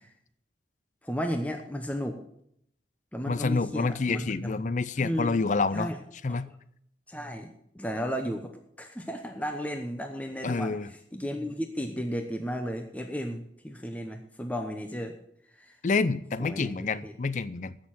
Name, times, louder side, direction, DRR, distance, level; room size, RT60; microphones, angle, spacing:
voice 1, 1.0-2.2 3.1-4.6 5.0-5.4 5.7-6.0 6.3-6.4 7.1-8.5 8.8-15.1 15.6-15.8 16.4-17.1, equal, 10° left, 5 dB, 0.8 m, -34 dB
voice 2, 3.3-5.9 6.2-6.5 10.4-10.9 15.8-17.8, left 4 dB, 40° left, 16 dB, 0.5 m, -28 dB
15.0 x 6.5 x 5.9 m, 0.72 s
head